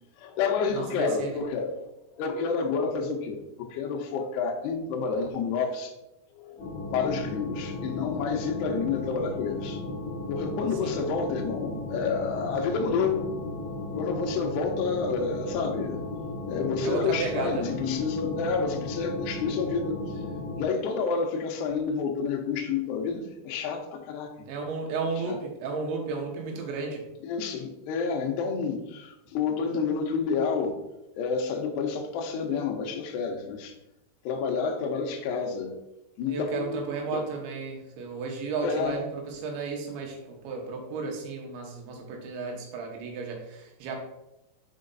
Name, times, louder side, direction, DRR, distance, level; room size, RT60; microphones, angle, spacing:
voice 1, 0.2-1.8 2.2-5.9 6.4-6.6 6.9-9.8 10.3-13.3 14.0-16.1 16.5-20.0 20.5-24.5 25.2-25.4 27.2-30.8 31.1-33.8 34.2-35.8 36.2-37.3 38.6-39.0, left 5 dB, 75° left, 2 dB, 2.6 m, -29 dB
voice 2, 0.7-1.4 10.8-10.9 16.8-17.6 24.5-27.1 36.3-44.0, right 4 dB, 75° right, 1 dB, 3.3 m, -33 dB
sound 1, 6.6-20.6, left 2 dB, 30° left, 1.5 m, -35 dB
6.5 x 5.0 x 3.9 m, 0.90 s
omnidirectional pair, 5.5 m